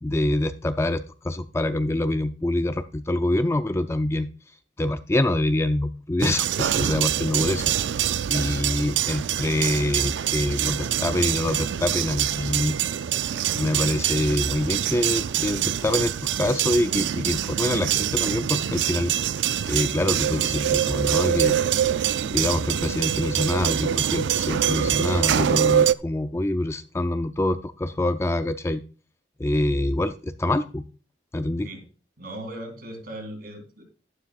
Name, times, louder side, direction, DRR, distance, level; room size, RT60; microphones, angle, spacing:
voice 1, 0.0-4.3 4.8-7.6 8.3-12.8 13.5-16.1 16.4-19.1 19.7-21.6 21.9-22.0 22.3-28.8 29.4-30.8 31.3-31.7, left 1 dB, 15° left, 9 dB, 0.4 m, -25 dB
sound 1, 6.2-25.9, right 10 dB, 80° right, 0.4 m, -25 dB
voice 2, 32.2-33.8, right 1 dB, 55° right, 3 dB, 3.0 m, -38 dB
12.0 x 11.5 x 2.4 m, 0.36 s
head